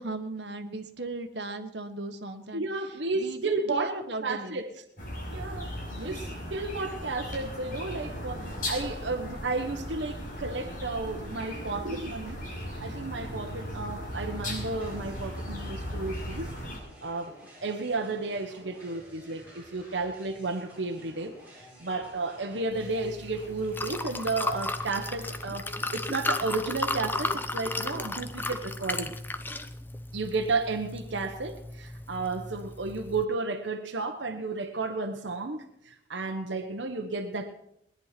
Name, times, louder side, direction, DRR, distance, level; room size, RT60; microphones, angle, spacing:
voice 1, 0.0-4.6 5.9-6.2, right 2 dB, 75° right, 5 dB, 1.5 m, -37 dB
voice 2, 2.5-4.7 5.3-5.7 6.0-12.4 12.8-16.5 17.0-29.1 30.1-37.5, right 3 dB, 90° right, 3 dB, 1.2 m, -33 dB
sound 1, 5.0-16.8, equal, 50° left, 5.8 m, -37 dB
sound 2, 14.8-25.5, equal, 10° right, 7.5 m, -52 dB
Liquid, 22.7-33.2, left 2 dB, 10° left, 0.7 m, -35 dB
20.0 x 10.5 x 6.0 m, 0.76 s
head